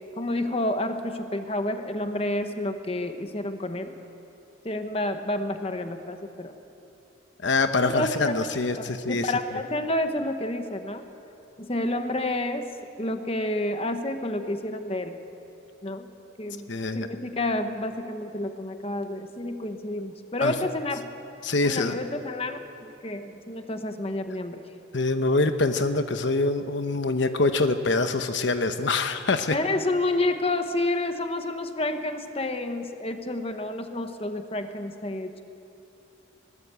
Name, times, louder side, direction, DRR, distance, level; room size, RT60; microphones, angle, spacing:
voice 1, 0.2-3.9 4.6-6.5 7.9-8.5 8.8-11.0 11.6-12.7 13.0-15.2 15.8-16.1 16.4-16.7 16.9-21.1 21.6-22.6 23.0-24.6 29.5-35.4, left 1 dB, 30° left, 7 dB, 1.1 m, -29 dB
voice 2, 7.4-9.4 16.7-17.1 20.4-20.5 21.4-22.0 24.9-29.6, left 3 dB, 65° left, 8 dB, 0.9 m, -25 dB
21.5 x 19.0 x 8.2 m, 2.9 s
head